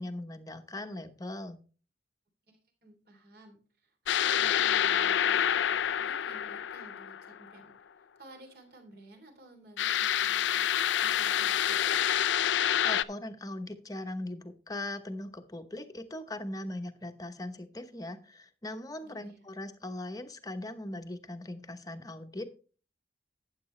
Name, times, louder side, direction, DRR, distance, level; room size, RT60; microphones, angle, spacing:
voice 1, 0.0-1.6 12.8-22.5, left 1 dB, 20° left, 7 dB, 0.9 m, -40 dB
voice 2, 2.5-11.8 19.0-19.4, right 1 dB, 55° right, 4 dB, 3.2 m, -54 dB
sound 1, 4.1-7.5 9.8-13.0, left 10 dB, 80° left, 0.4 m, -27 dB
12.0 x 9.0 x 3.2 m, 0.37 s
head